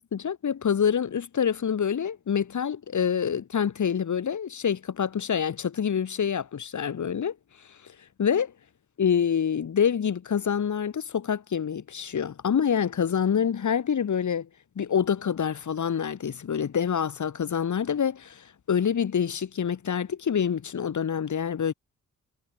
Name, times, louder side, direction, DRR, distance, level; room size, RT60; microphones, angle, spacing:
voice 1, 0.0-7.4 8.2-8.5 9.0-14.5 14.8-21.7, left 7 dB, 60° left, 2.0 m, -26 dB
supercardioid pair, 45°, 33 cm